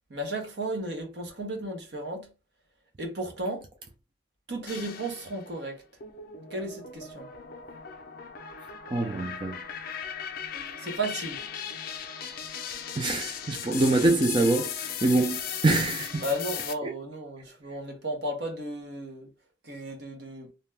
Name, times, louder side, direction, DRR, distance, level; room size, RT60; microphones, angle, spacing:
voice 1, 0.1-2.3 3.0-3.7 4.5-5.8 6.5-7.3 10.8-11.4 16.2-19.3 19.6-20.5, right 1 dB, 70° right, 0.8 m, -34 dB
sound 1, 4.7-5.5 6.0-16.7, left 7 dB, 55° left, 0.4 m, -37 dB
voice 2, 8.9-9.6 12.9-16.2, right 2 dB, 25° right, 0.4 m, -25 dB
2.7 x 2.2 x 3.2 m
head